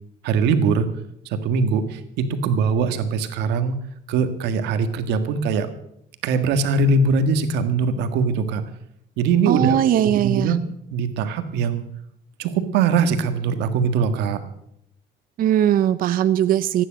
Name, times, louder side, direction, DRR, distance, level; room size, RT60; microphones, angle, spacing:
voice 1, 0.2-0.9 1.2-3.8 4.1-5.7 6.2-8.6 9.2-11.8 12.4-14.4, right 5 dB, 90° right, 9 dB, 1.7 m, -22 dB
voice 2, 9.5-10.6 15.4-16.8, right 11 dB, 55° right, 14 dB, 0.6 m, -19 dB
15.0 x 10.0 x 7.5 m, 0.75 s
cardioid pair, 110°, 17 cm